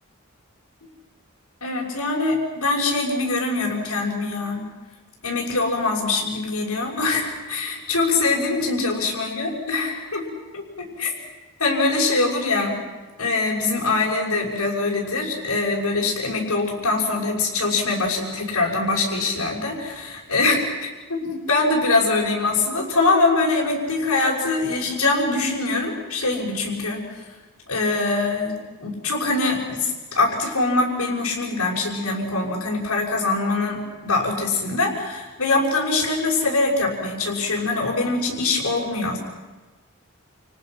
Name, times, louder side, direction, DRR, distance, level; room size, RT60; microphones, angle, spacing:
voice 1, 1.6-4.6 5.2-10.3 10.5-10.6 11.0-11.1 11.6-12.8 13.2-27.0 27.7-28.5 28.8-39.2, left 3 dB, 90° left, -4 dB, 6.1 m, -23 dB
30.0 x 29.5 x 6.1 m, 1.2 s
head